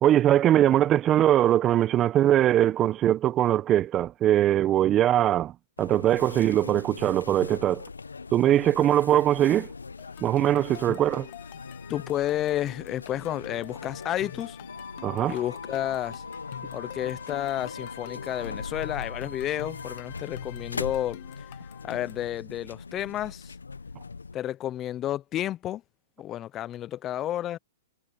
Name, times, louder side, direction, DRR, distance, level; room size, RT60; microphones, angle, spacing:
voice 1, 0.0-5.5 5.8-7.8 8.3-9.7 10.2-11.3 15.0-15.4, right 12 dB, 30° right, 1.4 m, -21 dB
sound 1, 5.8-24.4, left 4 dB, 90° left, 1.3 m, -40 dB
sound 2, 10.0-22.3, left 20 dB, 50° left, 2.5 m, -47 dB
voice 2, 11.9-14.6 15.3-16.2 16.7-21.2 21.8-23.5 24.3-25.8 26.2-27.6, left 12 dB, 30° left, 0.8 m, -31 dB
hypercardioid pair, 115°, 0 cm